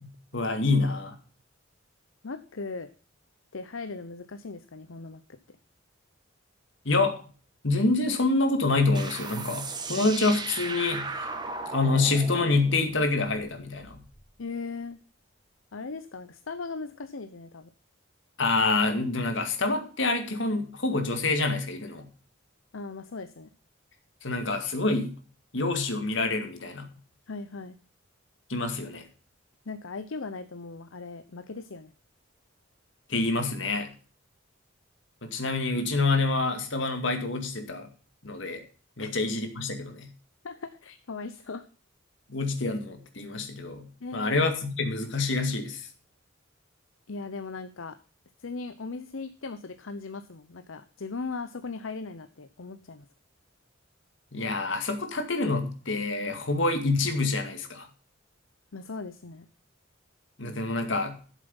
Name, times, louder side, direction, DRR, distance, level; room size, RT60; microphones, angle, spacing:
voice 1, 0.0-1.2 6.9-7.2 7.6-11.1 11.7-14.0 18.4-22.1 24.2-25.2 25.5-26.9 28.5-29.0 33.1-33.9 35.2-37.9 38.2-38.6 39.0-40.1 42.3-45.9 54.3-57.9 60.4-61.2, left 3 dB, 65° left, 6 dB, 2.2 m, -27 dB
voice 2, 2.2-2.9 3.5-5.2 14.4-15.0 15.7-17.7 22.7-23.5 27.3-27.8 29.7-31.9 39.0-39.1 40.4-41.7 44.0-44.4 47.1-48.0 48.4-53.0 58.7-59.5, left 4 dB, 80° left, 10 dB, 0.8 m, -38 dB
sound 1, 8.9-14.2, right 3 dB, 20° right, 1.3 m, -37 dB
12.0 x 7.4 x 5.3 m, 0.40 s
head